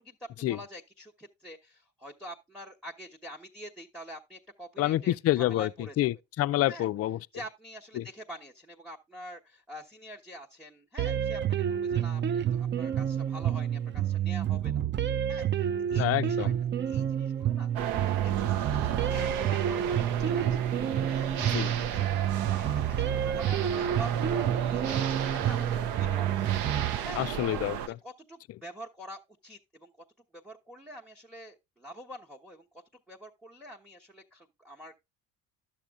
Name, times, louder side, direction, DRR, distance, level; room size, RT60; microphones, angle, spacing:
voice 1, 0.0-6.1 6.7-6.9 7.3-14.8 15.3-16.5 16.9-17.7 18.0-20.6 21.0-26.5 27.0-27.2 27.9-29.9 30.3-32.7 33.1-34.9, equal, ahead, 1.1 m, -46 dB
voice 2, 4.8-7.2 8.0-8.1 16.0-16.6 21.5-21.7 27.2-28.0, left 15 dB, 40° left, 0.4 m, -28 dB
sound 1, 11.0-27.0, right 10 dB, 30° right, 0.5 m, -29 dB
sound 2, 17.7-27.9, right 9 dB, 70° right, 0.8 m, -34 dB
11.5 x 7.2 x 2.4 m
hypercardioid pair, 65°, 41 cm